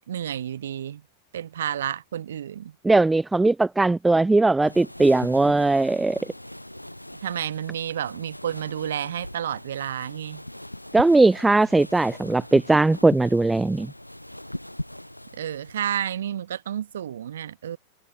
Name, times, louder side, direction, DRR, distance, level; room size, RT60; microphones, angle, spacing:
voice 1, 0.1-1.0 1.3-2.7 7.2-10.4 15.3-17.8, right 10 dB, 65° right, 1.9 m, -30 dB
voice 2, 2.8-6.2 10.9-13.9, right 2 dB, 10° right, 0.4 m, -19 dB
sound 1, 4.6-15.8, left 1 dB, 90° left, 4.7 m, -40 dB
figure-of-eight pair, 90°, 0 cm